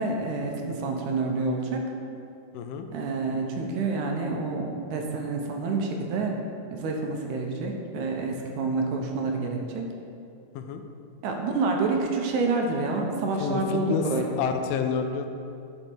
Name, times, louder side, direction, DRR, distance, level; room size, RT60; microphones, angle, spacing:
voice 1, 0.0-1.9 2.9-6.4 6.7-9.9 11.2-14.3, right 3 dB, 80° right, 2 dB, 2.2 m, -28 dB
voice 2, 2.5-2.9 10.6-10.8 13.4-14.0 14.4-15.3, left 7 dB, 90° left, 7 dB, 2.2 m, -29 dB
9.8 x 5.1 x 4.5 m, 2.6 s
omnidirectional pair, 3.6 m